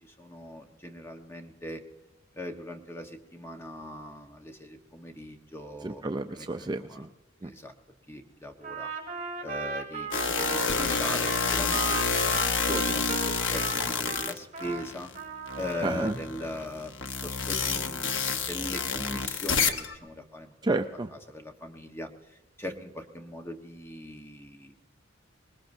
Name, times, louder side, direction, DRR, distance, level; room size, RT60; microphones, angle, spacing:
voice 1, 0.0-1.8 2.3-6.0 6.3-7.1 7.4-7.7 8.1-8.9 9.4-15.1 15.6-16.9 17.2-20.5 21.1-24.8, left 1 dB, 15° left, 3 dB, 1.2 m, -40 dB
voice 2, 5.8-7.1 7.4-7.5 15.8-16.2 20.6-21.1, right 2 dB, 20° right, 7 dB, 0.4 m, -30 dB
Trumpet, 8.6-14.8 15.1-15.9, right 5 dB, 40° right, 3.2 m, -36 dB
sound 1, 10.1-15.1 15.5-19.9, left 5 dB, 70° left, 1.0 m, -29 dB
25.0 x 20.5 x 2.7 m, 1.1 s
head